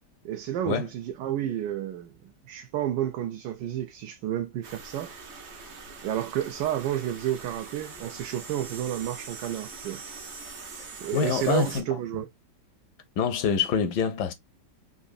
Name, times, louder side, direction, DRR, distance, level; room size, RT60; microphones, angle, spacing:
voice 1, 0.2-2.1 2.5-5.1 6.0-10.0 11.0-12.3, right 11 dB, 85° right, 1.2 m, -31 dB
sound 1, 4.6-11.8, right 4 dB, 50° right, 0.8 m, -43 dB
voice 2, 10.8-12.0 13.2-14.3, left 6 dB, 75° left, 1.2 m, -26 dB
4.1 x 2.6 x 2.4 m
omnidirectional pair, 1.9 m